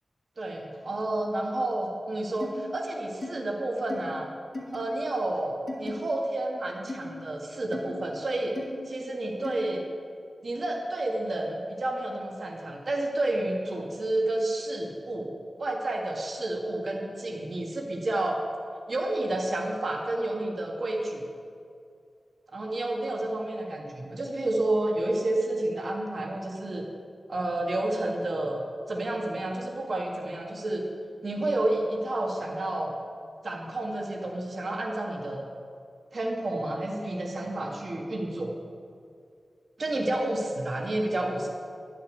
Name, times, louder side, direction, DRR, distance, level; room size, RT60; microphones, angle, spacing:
voice 1, 0.4-4.3 4.7-8.6 8.9-9.8 10.4-15.3 15.6-18.4 18.9-21.2 22.5-26.9 27.3-30.8 31.2-33.0 33.4-35.5 36.1-38.5 39.8-40.4 40.7-41.5, right 1 dB, 60° right, 0 dB, 1.7 m, -30 dB
sound 1, 2.4-2.6 3.2-3.3 3.9-4.0 4.5-4.8 5.7-5.9 6.9-7.0 7.7-7.9 8.6-8.7 9.4-9.6, left 2 dB, 45° left, 2.7 m, -36 dB
11.0 x 6.8 x 9.3 m, 2.3 s
wide cardioid pair, 95°, 0 cm